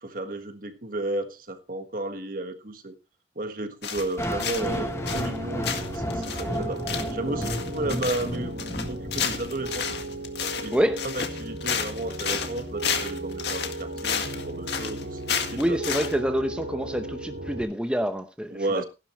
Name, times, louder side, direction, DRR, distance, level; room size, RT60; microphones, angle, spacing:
voice 1, 0.0-2.9 3.3-9.9 10.6-10.8 11.0-15.2 15.5-15.8 18.5-18.8, right 2 dB, 50° right, 1.5 m, -33 dB
sound 1, 3.8-4.8 5.1-5.4 5.6-16.1, left 7 dB, 65° left, 1.9 m, -31 dB
sound 2, 4.2-10.2, equal, 15° left, 1.3 m, -33 dB
Piano, 4.7-17.6, right 2 dB, 65° right, 2.7 m, -36 dB
voice 2, 10.7-11.0 15.6-18.6, equal, 5° right, 0.8 m, -26 dB
15.5 x 11.5 x 3.1 m
head